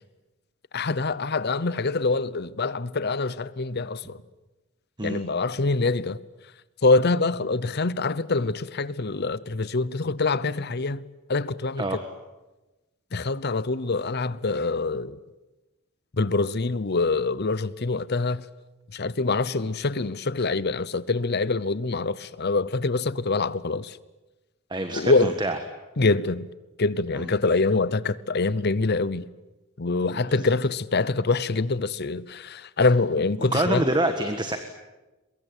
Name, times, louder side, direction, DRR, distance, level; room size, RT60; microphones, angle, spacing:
voice 1, 0.7-4.2 5.0-6.2 6.8-11.0 11.3-12.0 13.1-15.2 16.2-18.4 18.9-24.0 24.9-25.3 26.0-26.5 26.8-29.3 29.8-33.8, left 3 dB, 50° left, 0.8 m, -25 dB
voice 2, 24.7-25.6 27.1-27.3 30.1-30.5 33.4-34.6, right 1 dB, 20° right, 1.5 m, -26 dB
23.5 x 22.5 x 9.1 m
head